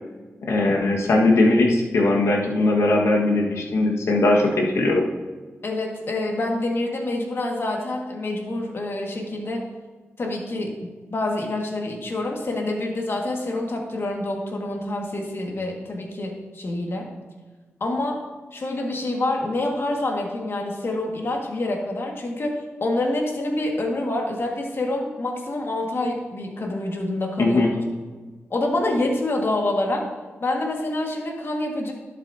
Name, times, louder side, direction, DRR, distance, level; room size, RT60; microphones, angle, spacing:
voice 1, 0.5-5.0 27.4-27.7, left 2 dB, 80° left, 0 dB, 1.5 m, -19 dB
voice 2, 5.6-9.7 10.2-17.1 17.8-18.2 18.5-27.8 28.5-30.1 30.4-31.9, left 2 dB, 55° left, 1 dB, 1.7 m, -27 dB
11.5 x 8.3 x 2.7 m, 1.3 s
cardioid pair, 60°, 5 cm